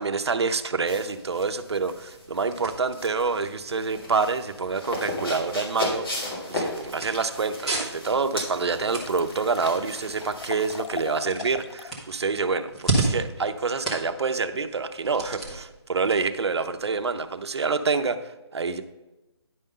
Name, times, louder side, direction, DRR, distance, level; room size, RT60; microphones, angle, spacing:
voice 1, 0.0-18.8, right 4 dB, 70° right, 9 dB, 0.7 m, -27 dB
sound 1, 0.5-17.5, right 2 dB, ahead, 0.5 m, -36 dB
sound 2, 0.9-11.2, left 1 dB, 55° left, 2.6 m, -36 dB
Liquid, 8.4-8.5 8.7-11.9 12.3-12.4, left 6 dB, 80° left, 0.4 m, -39 dB
10.0 x 5.3 x 3.8 m, 1.0 s
hypercardioid pair, 175°, 14 cm